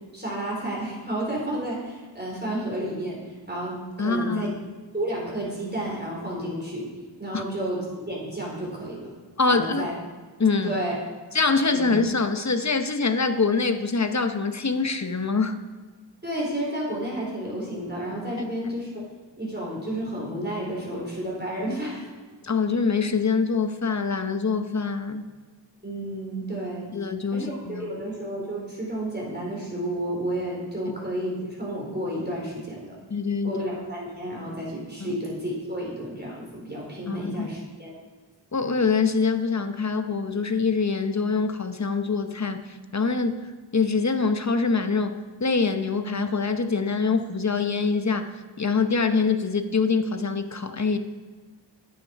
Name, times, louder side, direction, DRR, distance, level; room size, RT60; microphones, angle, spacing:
voice 1, 0.1-4.5 4.9-6.9 7.2-9.1 9.5-9.9 10.6-11.0 11.7-11.9 16.2-19.0 19.4-22.0 25.8-26.9 27.3-32.9 33.4-38.0, right 1 dB, 25° right, -4 dB, 4.4 m, -31 dB
voice 2, 4.0-4.8 7.3-7.4 9.4-9.9 10.4-10.8 11.3-15.6 22.4-25.3 26.9-28.0 33.1-33.6 35.0-35.2 37.1-37.5 38.5-43.5 43.7-48.3 48.6-51.0, left 4 dB, 40° left, 8 dB, 0.9 m, -24 dB
10.5 x 9.1 x 5.3 m, 1.4 s
wide cardioid pair, 55°, 44 cm